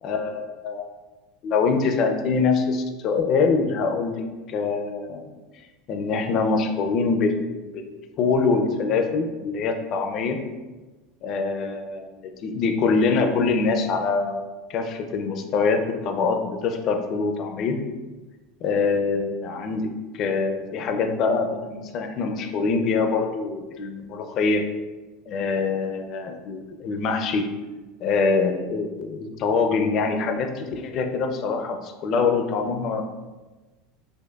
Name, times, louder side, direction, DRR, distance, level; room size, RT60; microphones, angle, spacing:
voice 1, 0.0-0.9 1.4-5.3 5.9-10.4 11.2-17.8 18.6-24.6 25.3-27.5 28.0-33.0, left 4 dB, 35° left, 5 dB, 0.4 m, -24 dB
4.6 x 2.4 x 2.2 m, 1.2 s
supercardioid pair, 160°, 0 cm